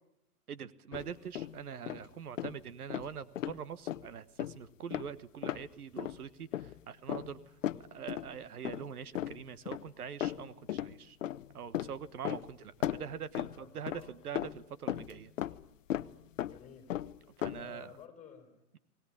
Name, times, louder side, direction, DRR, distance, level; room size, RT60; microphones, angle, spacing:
voice 1, 0.5-7.6 7.9-11.2 11.5-15.3 17.4-17.9, right 7 dB, 75° right, 14 dB, 1.4 m, -44 dB
sound 1, 0.9-1.6 1.9-2.1 2.4-2.6 2.9-3.6 3.9-4.1 4.4-4.6 4.9-5.1 5.4-5.7 6.0-6.2 6.5-6.8 7.1-8.4 8.6-8.9 9.1-9.9 10.2-10.9 11.2-12.5 12.8-14.1 14.3-15.6 15.9-16.1 16.4-16.6 16.9-17.7, left 12 dB, 55° left, 0.9 m, -36 dB
voice 2, 13.4-14.1 16.5-17.0 17.3-18.6, left 8 dB, 15° left, 6 dB, 4.5 m, -54 dB
21.0 x 19.0 x 9.9 m, 0.79 s
hypercardioid pair, 140°, 45 cm